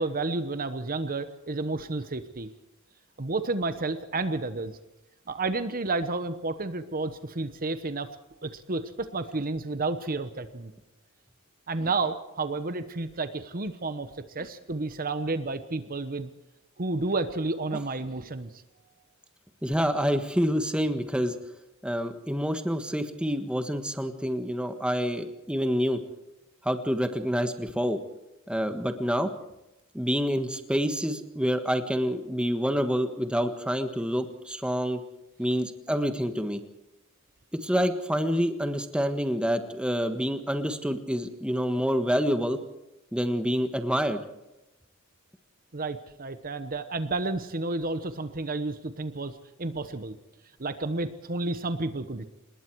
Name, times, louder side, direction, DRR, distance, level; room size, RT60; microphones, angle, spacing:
voice 1, 0.0-2.5 3.2-4.8 5.3-8.1 8.4-10.7 11.7-14.1 14.3-16.3 16.8-18.5 45.7-50.2 50.6-52.3, right 3 dB, 45° right, 10 dB, 1.1 m, -31 dB
voice 2, 19.6-21.3 21.8-26.0 26.6-28.0 28.5-29.3 29.9-35.0 35.4-36.6 37.5-42.6 43.1-44.2, equal, 5° right, 7 dB, 1.4 m, -27 dB
26.5 x 20.5 x 4.7 m, 0.92 s
head